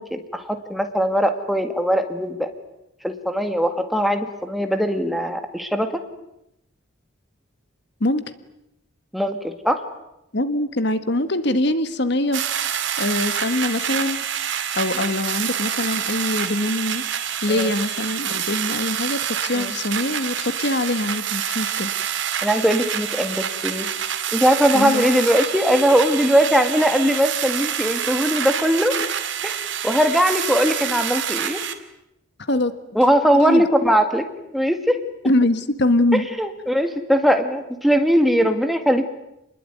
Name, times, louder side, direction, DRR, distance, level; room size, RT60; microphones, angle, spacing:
voice 1, 0.0-2.5 3.0-6.0 9.1-9.8 17.5-17.7 19.5-19.7 22.4-23.9 24.3-29.0 29.4-29.6 29.8-31.6 33.0-34.3 34.5-35.0 36.1-39.0, equal, ahead, 6 dB, 2.1 m, -20 dB
voice 2, 10.3-12.4 13.0-14.2 14.7-17.0 17.4-21.9 24.7-25.1 32.4-32.7 33.4-33.6 35.2-36.3 38.4-38.6, left 1 dB, 55° left, 11 dB, 1.6 m, -23 dB
sound 1, 12.3-31.7, right 9 dB, 65° right, 2.6 m, -27 dB
28.5 x 21.0 x 9.4 m, 0.87 s
head